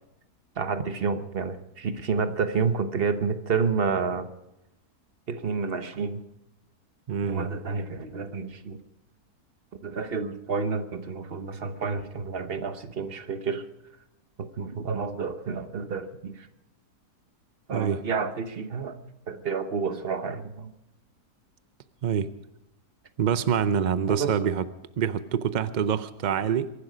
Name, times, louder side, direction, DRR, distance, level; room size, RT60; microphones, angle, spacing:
voice 1, 0.5-4.3 5.3-6.2 7.2-8.8 9.8-13.7 14.4-16.5 17.7-19.0 19.3-20.7 24.1-24.5, right 5 dB, 40° right, 10 dB, 1.1 m, -30 dB
voice 2, 7.1-7.5 17.7-18.0 22.0-22.3 23.2-24.7 25.0-26.7, right 8 dB, 75° right, 13 dB, 0.4 m, -26 dB
23.5 x 11.5 x 5.1 m, 0.87 s
omnidirectional pair, 1.7 m